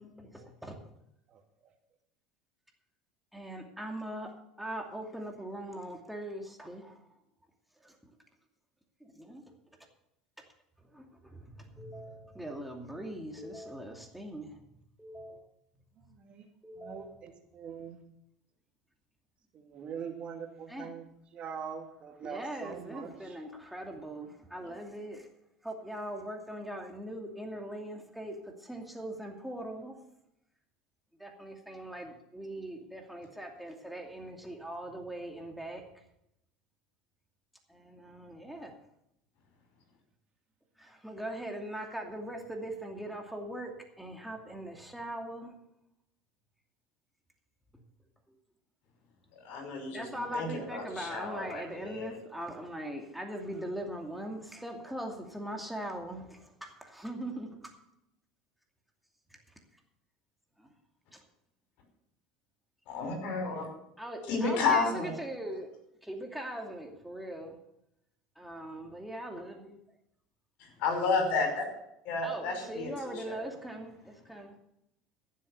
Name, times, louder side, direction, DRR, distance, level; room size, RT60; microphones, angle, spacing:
voice 1, 0.0-0.8 3.3-4.3 4.6-7.0 7.8-8.0 9.0-9.4 10.9-14.6 15.0-15.4 16.6-17.2 20.7-20.9 22.2-25.3 25.6-29.9 31.2-35.8 37.7-38.8 40.8-45.5 49.9-57.7 60.6-60.7 61.1-61.2 64.0-65.7 66.0-67.6 68.4-69.8 72.2-74.6, right 1 dB, 5° right, 2.5 m, -41 dB
voice 2, 16.1-16.5 16.8-18.0 19.5-21.1 21.3-23.4, right 7 dB, 45° right, 2.4 m, -43 dB
voice 3, 49.4-52.2 62.9-63.7 64.3-65.1 70.8-71.6 72.0-73.5, left 4 dB, 65° left, 5.4 m, -31 dB
15.5 x 7.6 x 6.6 m
hypercardioid pair, 85°, 3 cm